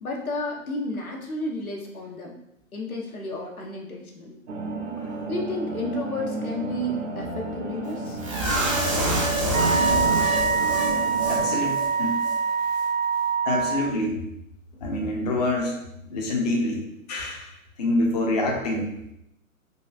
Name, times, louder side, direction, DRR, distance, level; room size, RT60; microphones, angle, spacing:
voice 1, 0.0-2.3 2.7-4.4 5.3-8.2 14.7-14.8, left 1 dB, 90° left, 0 dB, 0.8 m, -32 dB
sound 1, 4.5-11.7, right 3 dB, 55° right, 0.7 m, -33 dB
sound 2, 8.2-11.4 11.7-11.9 12.2-12.3, right 1 dB, 25° right, 0.4 m, -26 dB
Wind instrument woodwind instrument, 9.5-13.9, right 6 dB, 90° right, 0.7 m, -24 dB
voice 2, 11.2-12.2 13.4-14.2 14.8-15.8 16.1-16.8 17.1-17.5 17.8-18.9, left 1 dB, 30° left, 0 dB, 0.4 m, -26 dB
3.9 x 2.4 x 2.4 m, 0.81 s
figure-of-eight pair, 130°, 42 cm